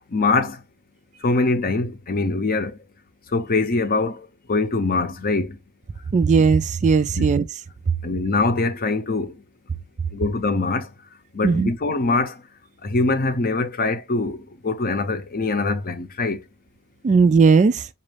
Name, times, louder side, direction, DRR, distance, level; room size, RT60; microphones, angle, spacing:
voice 1, 0.1-0.6 1.2-2.8 3.3-5.6 7.2-7.3 8.0-9.4 10.1-10.9 11.3-12.4 12.8-16.4, left 3 dB, 40° left, 0.7 m, -23 dB
voice 2, 6.1-7.5 11.4-11.7 17.0-17.9, right 5 dB, 35° right, 0.3 m, -17 dB
4.0 x 2.5 x 3.2 m
head